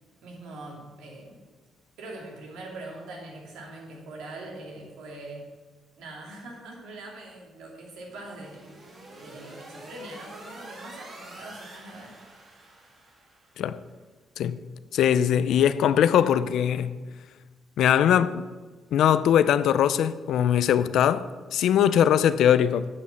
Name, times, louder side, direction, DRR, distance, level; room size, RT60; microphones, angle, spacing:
voice 1, 0.2-1.4 2.0-5.5 6.0-8.6 9.2-12.2, right 2 dB, 85° right, 2.4 m, -42 dB
sound 1, 8.1-13.7, right 2 dB, 40° right, 2.4 m, -46 dB
voice 2, 14.9-16.9 17.8-18.5 18.9-22.9, left 9 dB, 75° left, 0.4 m, -21 dB
8.6 x 5.2 x 6.8 m
cardioid pair, 90°, 0 cm